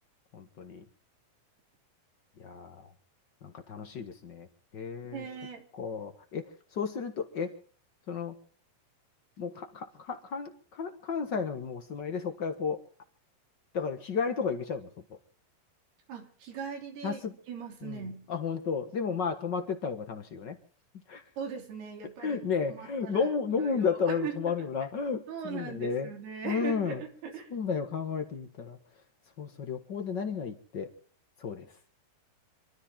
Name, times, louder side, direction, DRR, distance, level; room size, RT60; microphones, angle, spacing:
voice 1, 0.3-0.8 2.4-2.9 3.4-4.5 4.7-5.2 5.7-7.5 8.1-8.3 9.4-12.8 13.7-14.9 17.0-17.3 17.8-20.6 21.1-21.2 22.2-26.1 26.4-27.0 27.5-28.8 29.4-30.9 31.4-31.7, left 5 dB, 60° left, 6 dB, 1.1 m, -33 dB
voice 2, 5.1-5.6 16.1-17.2 17.5-18.2 21.4-24.7 25.3-27.5, right 6 dB, 90° right, 3 dB, 5.2 m, -40 dB
26.5 x 13.5 x 3.7 m, 0.43 s
omnidirectional pair, 4.4 m